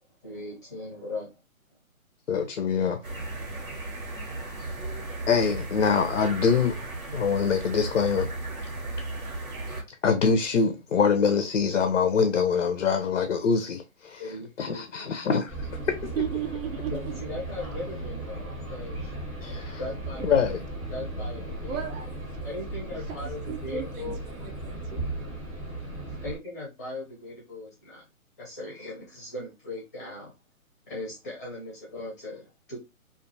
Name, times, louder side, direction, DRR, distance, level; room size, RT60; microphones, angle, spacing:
voice 1, 0.2-1.4 14.2-15.1 16.9-19.1 19.8-20.3 20.9-21.8 22.4-24.2 26.2-28.1 28.4-30.3 30.9-32.8, left 2 dB, 15° left, 0.6 m, -38 dB
voice 2, 2.3-3.0 5.3-6.8 7.1-8.3 9.9-14.2 14.6-16.1 19.4-19.8 20.2-20.6, left 6 dB, 55° left, 0.4 m, -24 dB
sound 1, 3.0-9.8, right 2 dB, 85° right, 1.2 m, -35 dB
sound 2, 15.5-26.4, right 2 dB, 20° right, 0.8 m, -36 dB
voice 3, 16.0-17.1 20.2-20.3 21.7-22.2 22.9-25.1, right 9 dB, 65° right, 0.7 m, -35 dB
2.5 x 2.2 x 2.5 m
hypercardioid pair, 150°, 43 cm